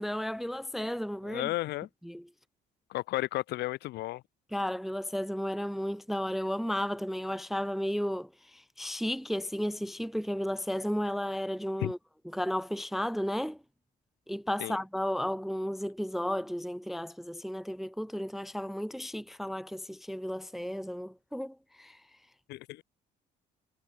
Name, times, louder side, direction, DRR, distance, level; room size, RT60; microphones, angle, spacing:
voice 1, 0.0-1.5 2.0-2.3 4.5-12.0 12.2-13.6 14.3-22.0, equal, ahead, 0.5 m, -33 dB
voice 2, 1.3-1.9 2.9-4.2 11.8-11.9 14.6-14.8 22.5-22.8, left 17 dB, 80° left, 3.1 m, -33 dB
cardioid pair, 110°, 17 cm